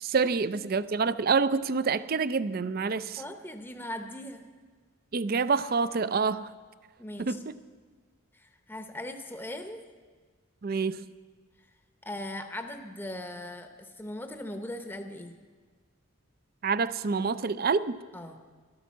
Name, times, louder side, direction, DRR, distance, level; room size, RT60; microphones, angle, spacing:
voice 1, 0.0-3.2 5.1-6.5 7.2-7.5 10.6-11.1 16.6-18.0, right 5 dB, 45° right, 15 dB, 0.5 m, -27 dB
voice 2, 3.2-4.4 7.0-7.4 8.3-9.8 12.0-15.3 18.1-18.4, left 1 dB, 10° left, 6 dB, 0.8 m, -39 dB
13.5 x 12.0 x 7.3 m, 1.5 s
head